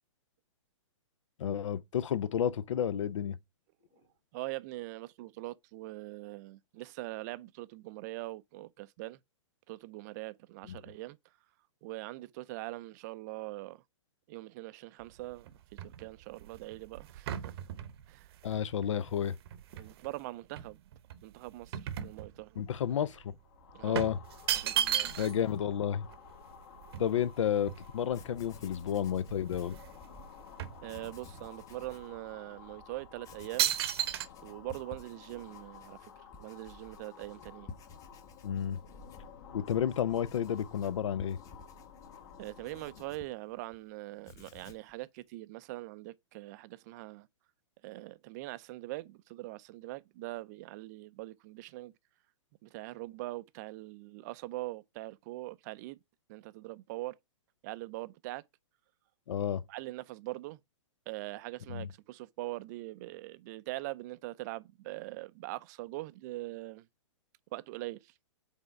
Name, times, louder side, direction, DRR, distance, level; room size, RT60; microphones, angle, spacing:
voice 1, 1.4-3.4 18.4-19.3 22.6-23.3 23.8-24.2 25.2-26.1 27.0-29.8 38.4-38.8 39.5-41.4 59.3-59.6 61.7-61.9, left 9 dB, 75° left, 0.5 m, -31 dB
voice 2, 4.3-9.2 9.7-11.2 11.8-13.8 14.3-15.6 15.8-17.7 18.1-18.3 19.8-20.8 21.2-22.6 23.7-24.0 24.6-25.2 30.8-33.7 34.4-36.1 36.4-37.7 42.4-47.3 47.8-51.9 52.6-56.0 56.3-57.2 57.6-58.4 59.7-60.6 61.1-66.9 67.5-68.1, right 19 dB, 35° right, 0.4 m, -42 dB
sound 1, 15.0-20.1 20.6-22.7 23.0-23.2 23.9-25.5 25.8-25.9 26.1-28.3 28.8-28.9 29.2-30.0 30.2-31.5 32.0-32.2 32.8-33.1 33.6-34.3, right 11 dB, 55° right, 0.8 m, -35 dB
sound 2, 23.4-43.3, left 7 dB, 50° left, 1.2 m, -53 dB
Writing, 27.8-27.9 28.1-30.3 30.8-32.1 32.6-32.7 33.2-43.8 44.1-44.9, left 4 dB, 20° left, 0.8 m, -54 dB
5.4 x 4.1 x 4.5 m
hypercardioid pair, 140°, 16 cm